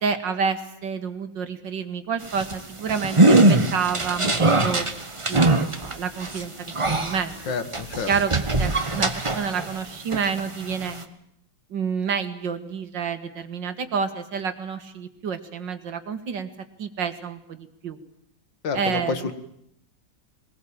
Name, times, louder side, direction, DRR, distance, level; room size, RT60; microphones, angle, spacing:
voice 1, 0.0-4.9 5.3-7.5 8.1-11.0 11.7-16.5 16.8-18.0 18.7-19.3, right 6 dB, 80° right, 9 dB, 2.5 m, -29 dB
sound 1, 2.2-9.8 10.1-11.0, right 2 dB, 20° right, 1.3 m, -22 dB
voice 2, 7.5-8.1 18.6-19.3, left 5 dB, 90° left, 11 dB, 2.4 m, -28 dB
22.0 x 20.5 x 8.8 m, 0.72 s
omnidirectional pair, 1.9 m